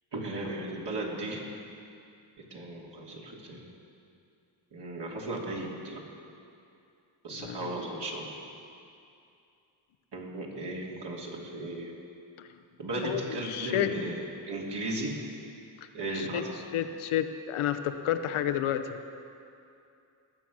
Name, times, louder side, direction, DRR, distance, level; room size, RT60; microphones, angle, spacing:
voice 1, 0.1-1.4 2.5-3.7 4.7-6.0 7.2-8.5 10.1-11.9 12.8-14.2 14.5-15.2 15.9-16.5, right 2 dB, 55° right, -2 dB, 3.0 m, -36 dB
voice 2, 7.3-7.7 13.0-13.9 16.1-16.4 16.7-18.9, left 11 dB, 75° left, 8 dB, 0.9 m, -30 dB
19.5 x 7.0 x 6.3 m, 2.6 s
cardioid pair, 65°, 50 cm